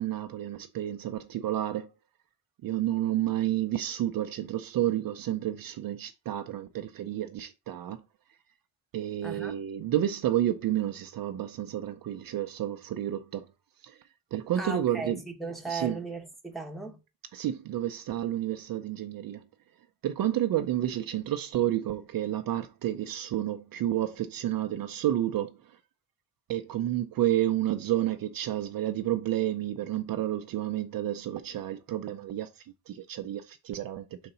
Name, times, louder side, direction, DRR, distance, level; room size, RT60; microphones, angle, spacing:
voice 1, 0.0-1.9 2.6-8.0 8.9-13.5 13.8-14.0 14.3-15.2 15.7-16.0 17.3-19.4 20.0-25.6 26.5-34.1, right 12 dB, 50° right, 0.5 m, -30 dB
voice 2, 9.2-9.5 14.6-17.0, right 3 dB, ahead, 1.0 m, -37 dB
5.0 x 3.9 x 5.5 m
cardioid pair, 160°, 44 cm